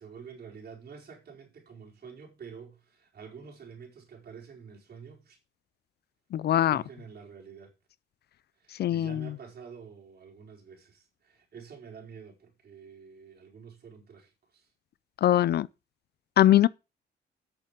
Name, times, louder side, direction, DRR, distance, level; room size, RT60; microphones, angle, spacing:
voice 1, 0.0-5.4 6.6-7.7 8.6-14.7, right 6 dB, 50° right, 4.6 m, -48 dB
voice 2, 6.3-6.8 8.8-9.3 15.2-15.7 16.4-16.7, left 12 dB, 55° left, 0.4 m, -22 dB
8.7 x 6.7 x 5.2 m
cardioid pair, 90°, 20 cm